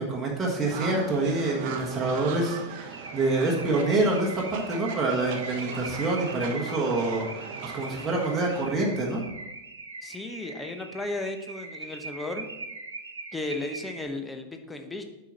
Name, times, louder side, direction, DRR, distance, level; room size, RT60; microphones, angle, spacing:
voice 1, 0.0-9.2, right 2 dB, 15° right, -3 dB, 1.5 m, -27 dB
sound 1, 0.6-8.6, right 6 dB, 50° right, 0.9 m, -39 dB
Car / Alarm, 2.9-14.1, right 3 dB, 75° right, 0.7 m, -41 dB
voice 2, 10.0-12.5 13.3-15.0, left 2 dB, 10° left, 6 dB, 0.9 m, -34 dB
8.8 x 5.9 x 4.0 m, 0.99 s
figure-of-eight pair, 90°, 0 cm